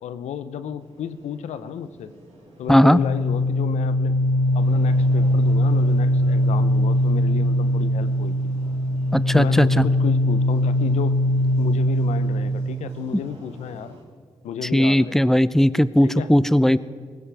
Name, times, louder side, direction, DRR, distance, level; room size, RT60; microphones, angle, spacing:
voice 1, 0.0-2.1 2.6-4.2 4.5-8.4 9.3-11.2 11.6-14.0 14.4-15.2 16.0-16.3, left 8 dB, 80° left, 13 dB, 0.7 m, -32 dB
sound 1, 0.8-14.0, right 2 dB, 80° right, 4.3 m, -45 dB
voice 2, 2.7-3.0 9.1-9.9 14.7-16.8, equal, 5° left, 17 dB, 0.6 m, -17 dB
sound 2, 3.0-12.7, left 1 dB, 60° left, 1.2 m, -21 dB
19.5 x 16.0 x 3.5 m, 2.1 s
supercardioid pair, 40°, 11 cm